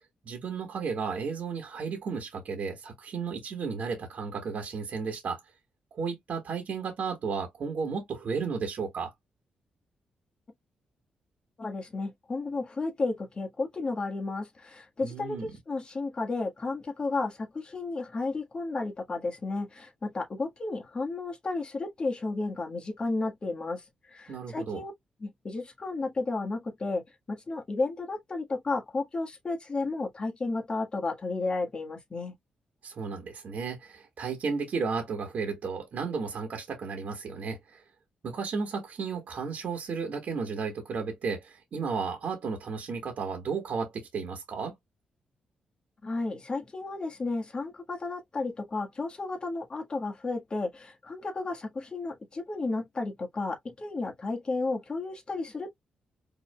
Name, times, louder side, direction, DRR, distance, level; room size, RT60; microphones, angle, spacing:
voice 1, 0.0-5.4 5.9-9.1 15.0-15.5 24.3-24.8 32.8-37.8 38.2-44.8, right 5 dB, 65° right, 1.5 m, -33 dB
voice 2, 11.6-24.9 25.2-32.3 46.0-55.7, left 3 dB, 35° left, 1.5 m, -33 dB
5.3 x 3.0 x 2.2 m
cardioid pair, 90°, 3 cm